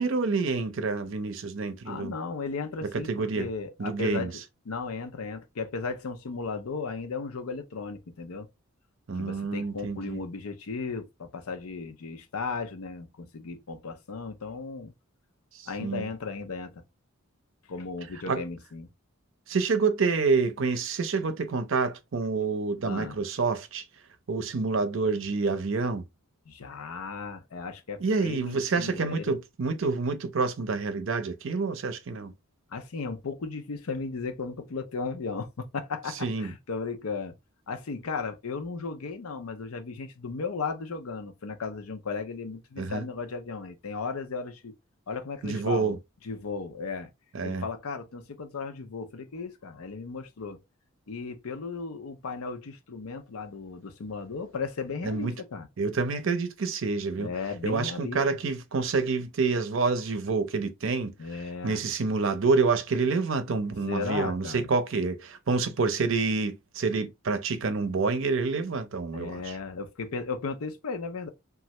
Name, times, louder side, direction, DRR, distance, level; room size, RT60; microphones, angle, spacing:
voice 1, 0.0-2.1 2.8-3.5 3.8-4.3 9.1-10.2 15.5-16.1 18.3-18.4 19.5-23.8 24.3-26.0 28.0-32.3 36.2-36.5 42.8-43.1 45.4-46.0 47.3-47.6 55.0-55.3 55.8-57.3 57.6-69.6, right 4 dB, 60° right, 0.5 m, -28 dB
voice 2, 1.9-4.4 4.7-8.5 9.2-14.9 15.7-16.8 17.7-18.9 22.8-23.2 26.5-29.4 32.7-37.3 37.7-44.7 45.1-46.0 46.2-47.1 47.4-50.6 51.1-55.7 57.2-58.2 61.2-61.8 63.9-64.7 69.1-71.3, left 4 dB, 90° left, 0.6 m, -35 dB
3.2 x 2.3 x 2.9 m
head